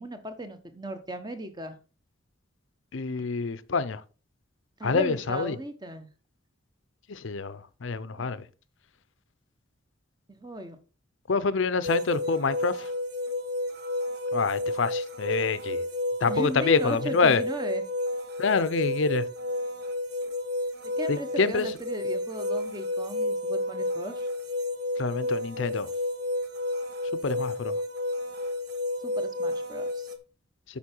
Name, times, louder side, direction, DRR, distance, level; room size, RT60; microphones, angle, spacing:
voice 1, 0.0-1.8 4.8-6.1 8.2-8.3 10.3-10.8 16.2-17.8 21.0-24.3 29.0-30.1, right 1 dB, 20° right, 1.0 m, -36 dB
voice 2, 2.9-4.0 4.8-5.6 7.1-8.4 11.3-12.9 14.3-15.8 16.2-17.4 18.4-19.2 21.1-21.7 25.0-25.9 27.2-27.7, left 4 dB, 75° left, 0.6 m, -26 dB
sound 1, 11.8-30.2, left 1 dB, 50° right, 1.1 m, -31 dB
8.4 x 5.7 x 4.5 m
head